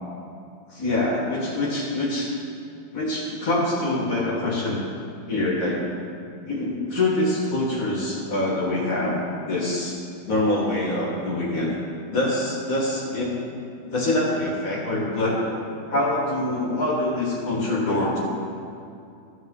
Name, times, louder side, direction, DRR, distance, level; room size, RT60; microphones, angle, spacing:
voice 1, 0.7-2.3 2.9-4.8 5.3-5.8 6.4-10.0 10.3-11.7 12.1-13.4 13.8-15.6 15.9-18.2, left 1 dB, 45° left, -3 dB, 1.8 m, -25 dB
13.5 x 6.5 x 3.7 m, 2.5 s
omnidirectional pair, 2.1 m